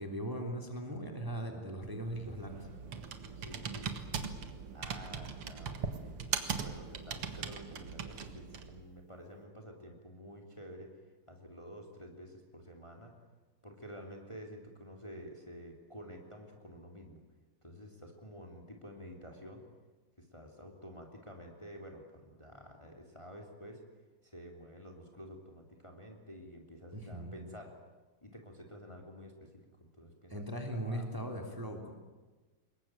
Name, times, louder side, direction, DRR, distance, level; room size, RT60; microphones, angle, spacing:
voice 1, 0.0-2.7 26.9-27.3 30.3-31.9, right 1 dB, 10° right, 3 dB, 3.1 m, -39 dB
Computer keyboard, 1.8-8.8, right 6 dB, 85° right, 2.6 m, -40 dB
voice 2, 3.3-4.0 4.7-6.2 6.6-10.9 11.3-13.1 13.6-17.2 17.6-19.6 20.2-23.8 24.2-27.7 28.2-30.5 30.7-31.2, equal, 15° left, 2 dB, 3.1 m, -50 dB
26.5 x 22.0 x 9.0 m, 1.2 s
omnidirectional pair, 2.4 m